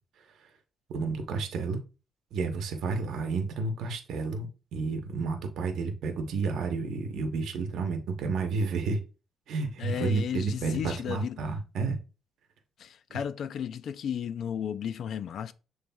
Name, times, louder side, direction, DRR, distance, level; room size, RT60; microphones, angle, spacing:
voice 1, 0.9-1.8 2.3-9.0 9.5-12.0, right 4 dB, 75° right, 0.9 m, -31 dB
voice 2, 9.8-11.4 12.8-15.5, left 8 dB, 65° left, 0.4 m, -34 dB
7.0 x 3.2 x 2.3 m
cardioid pair, 90°, 0 cm